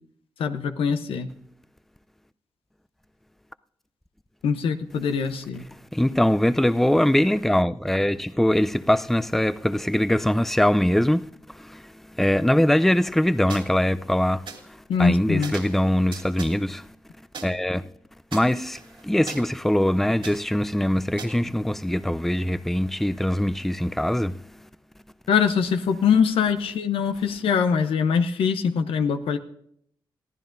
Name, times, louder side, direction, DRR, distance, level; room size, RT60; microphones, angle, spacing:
voice 1, 0.4-1.3 4.4-5.6 14.9-15.5 25.3-29.4, left 6 dB, 85° left, 0.8 m, -23 dB
voice 2, 5.9-11.2 11.5-11.9 12.2-16.8 17.4-17.9 18.3-24.4, left 1 dB, 5° left, 0.5 m, -22 dB
snare loop, 13.5-13.6 14.5-14.6 15.4-15.8 16.1-16.5 17.3-17.4 18.3-19.4 20.2-20.4 21.2-21.3, right 5 dB, 70° right, 2.7 m, -38 dB
22.0 x 14.5 x 2.6 m
cardioid pair, 60°, 9 cm